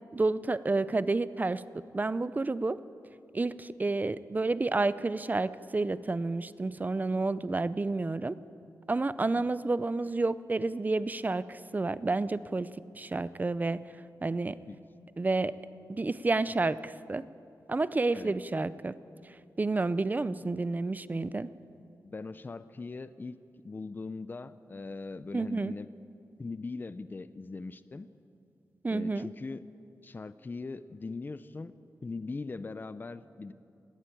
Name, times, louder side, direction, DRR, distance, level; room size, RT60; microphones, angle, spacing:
voice 1, 0.1-1.6 1.9-2.8 3.3-8.4 8.9-13.8 14.2-14.6 15.2-15.5 15.9-17.2 17.7-18.9 19.2-21.5 25.3-25.7 28.8-29.3, right 3 dB, 25° right, 16 dB, 0.5 m, -30 dB
voice 2, 22.0-23.4 23.6-25.9 26.4-28.1 28.9-29.6 30.0-31.7 32.0-33.5, left 3 dB, 30° left, 14 dB, 0.5 m, -40 dB
20.0 x 14.5 x 9.2 m, 2.7 s
wide cardioid pair, 140°, 7 cm